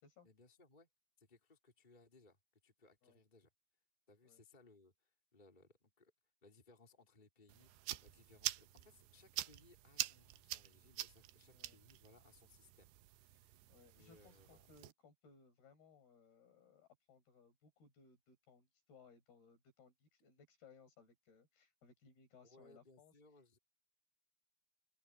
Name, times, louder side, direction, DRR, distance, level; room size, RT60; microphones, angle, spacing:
voice 1, 0.2-0.9 1.2-3.5 4.1-6.1 6.4-7.7 8.0-14.6 22.4-23.6, left 3 dB, 10° left, 3.6 m, -66 dB
sound 1, 7.5-14.9, right 16 dB, 90° right, 3.0 m, -47 dB
voice 2, 11.5-11.8 13.7-23.1, left 5 dB, 70° left, 7.4 m, -65 dB
open air
omnidirectional pair, 4.7 m